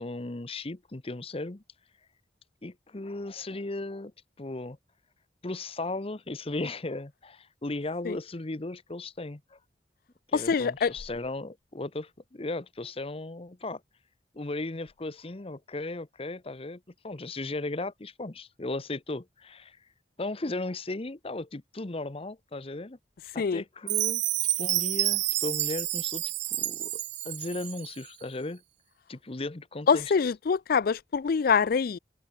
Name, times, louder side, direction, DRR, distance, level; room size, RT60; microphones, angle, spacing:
voice 1, 0.0-1.6 2.6-4.1 4.4-4.8 5.4-9.6 10.3-13.8 14.3-19.8 20.2-23.0 23.3-24.2 24.6-26.2 26.6-28.6 29.1-30.1, left 2 dB, 35° left, 0.9 m, -36 dB
voice 2, 10.3-10.9 23.4-23.6 29.9-32.0, left 5 dB, 55° left, 0.4 m, -25 dB
Chime, 23.9-27.9, right 16 dB, 75° right, 1.2 m, -29 dB
open air
head